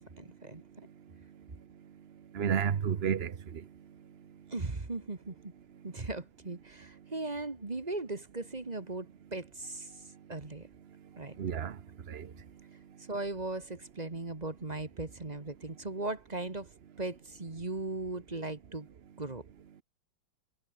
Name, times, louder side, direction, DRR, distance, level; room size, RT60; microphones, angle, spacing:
voice 1, 0.2-0.6 4.5-5.5 5.8-9.9 10.3-10.7 11.2-11.4 13.1-16.7 17.0-18.9 19.2-19.4, right 2 dB, 20° right, 1.6 m, -38 dB
voice 2, 0.9-4.4 5.9-6.0 11.1-12.5, right 8 dB, 45° right, 0.9 m, -35 dB
omnidirectional pair, 2.1 m